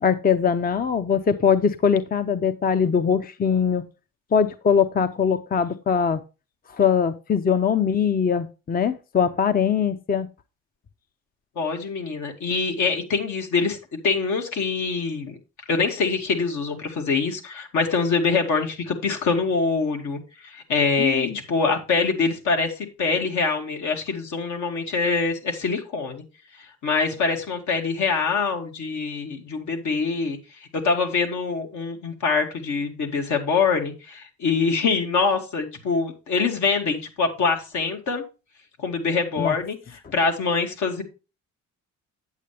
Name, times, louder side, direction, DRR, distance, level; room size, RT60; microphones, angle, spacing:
voice 1, 0.0-3.8 4.3-6.2 6.7-10.3 21.0-21.4 39.4-39.5, left 7 dB, 30° left, 11 dB, 0.6 m, -21 dB
voice 2, 11.6-13.8 14.0-15.4 15.7-26.2 26.8-30.4 30.8-38.2 38.8-39.8 40.1-41.0, left 4 dB, 75° left, 3 dB, 2.3 m, -24 dB
8.6 x 8.2 x 3.3 m, 0.30 s
cardioid pair, 90°, 30 cm